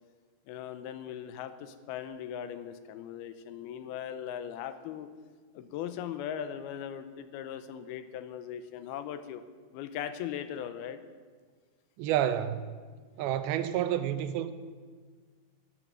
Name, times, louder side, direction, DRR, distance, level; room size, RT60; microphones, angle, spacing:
voice 1, 0.5-5.1 5.6-9.4 9.7-11.0, left 9 dB, 85° left, 2.6 m, -39 dB
voice 2, 12.0-12.6 13.2-14.5, right 11 dB, 80° right, 2.6 m, -29 dB
11.5 x 11.0 x 7.7 m
omnidirectional pair, 4.5 m